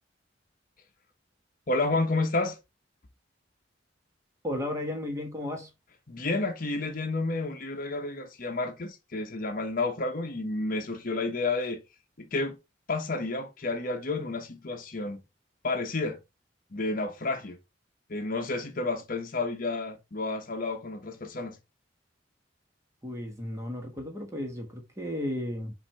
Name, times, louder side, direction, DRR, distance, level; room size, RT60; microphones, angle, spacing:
voice 1, 1.7-2.6 6.1-11.8 12.2-12.6 12.9-15.2 15.6-16.2 16.7-17.6 18.1-21.6, left 3 dB, 50° left, 0.9 m, -30 dB
voice 2, 4.4-5.7 23.0-25.7, left 1 dB, 15° right, 1.3 m, -34 dB
5.8 x 2.7 x 3.4 m
head